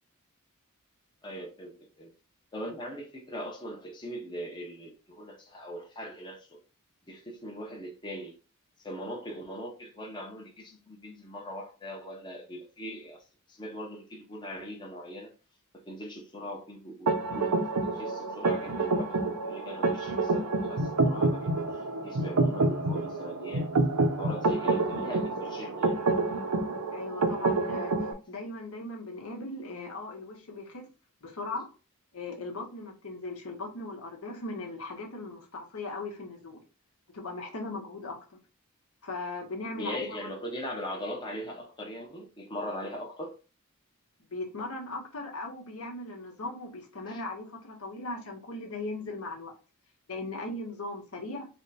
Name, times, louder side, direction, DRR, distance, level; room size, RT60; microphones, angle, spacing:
voice 1, 1.2-2.1 2.5-6.6 7.1-8.3 8.8-13.2 13.5-15.3 15.9-17.5 17.9-23.7 24.2-26.0 39.7-43.3 47.1-47.2, equal, 20° left, 0.7 m, -40 dB
sound 1, 17.1-28.1, right 3 dB, 90° right, 0.6 m, -28 dB
voice 2, 26.9-30.9 31.2-31.7 32.1-36.6 37.1-38.4 39.0-40.3 44.3-49.5 50.1-51.5, left 2 dB, 75° left, 1.0 m, -38 dB
3.4 x 2.2 x 4.0 m
head